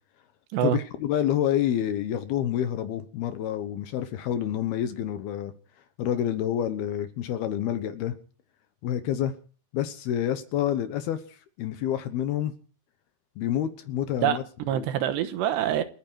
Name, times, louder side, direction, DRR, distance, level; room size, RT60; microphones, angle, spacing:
voice 1, 0.6-5.5 6.0-8.1 8.8-9.3 9.7-12.5 13.4-14.4 14.7-14.9, left 11 dB, 70° left, 2.7 m, -28 dB
voice 2, 14.2-15.8, right 10 dB, 80° right, 3.2 m, -26 dB
28.5 x 9.6 x 4.6 m
omnidirectional pair, 5.2 m